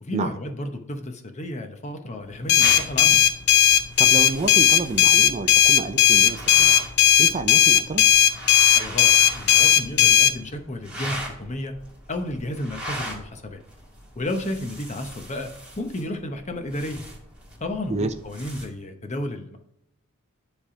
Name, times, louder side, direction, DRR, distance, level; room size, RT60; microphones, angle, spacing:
voice 1, 0.0-3.2 8.7-11.7 12.1-13.6 14.2-17.0 17.6-19.6, left 1 dB, 30° left, 6 dB, 0.8 m, -32 dB
sound 1, 2.5-10.3, left 10 dB, 50° left, 0.4 m, -16 dB
sound 2, 2.6-18.7, right 1 dB, 5° right, 2.0 m, -40 dB
voice 2, 4.0-6.7 7.2-8.1 17.9-18.1, right 3 dB, 30° right, 8 dB, 0.4 m, -29 dB
10.0 x 3.4 x 4.8 m, 0.80 s
head